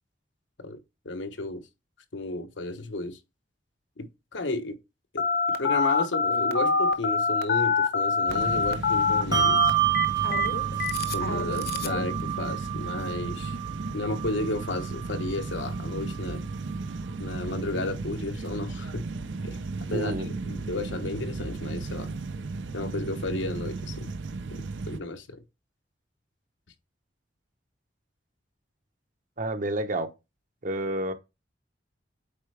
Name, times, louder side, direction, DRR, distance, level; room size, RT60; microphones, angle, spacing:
voice 1, 1.0-1.6 2.1-3.2 4.0-4.8 5.1-9.7 11.1-13.6 13.9-16.4 17.2-19.1 19.4-19.6 19.9-22.1 22.7-24.1 24.5-24.6 24.9-25.4, left 2 dB, 90° left, 1.1 m, -33 dB
Telephone, 5.2-12.0, left 4 dB, 60° left, 0.9 m, -25 dB
sound 1, 8.3-25.0, right 3 dB, 80° right, 0.6 m, -35 dB
Bell, 9.3-16.2, right 15 dB, 20° right, 0.6 m, -29 dB
voice 2, 19.9-20.3 29.4-30.1 30.6-31.1, right 1 dB, 45° right, 0.9 m, -29 dB
8.3 x 4.3 x 3.3 m
head